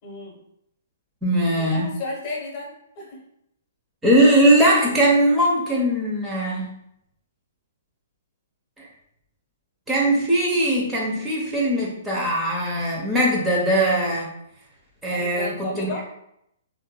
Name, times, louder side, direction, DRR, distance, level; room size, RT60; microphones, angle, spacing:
voice 1, 0.0-0.4 1.7-3.2 15.0-16.0, left 2 dB, 40° left, -1 dB, 1.1 m, -33 dB
voice 2, 1.2-1.9 4.0-6.8 8.8-8.9 9.9-14.3 15.0-16.0, right 1 dB, 10° right, -5 dB, 0.8 m, -20 dB
3.7 x 2.6 x 2.2 m, 0.77 s
hypercardioid pair, 125°, 0 cm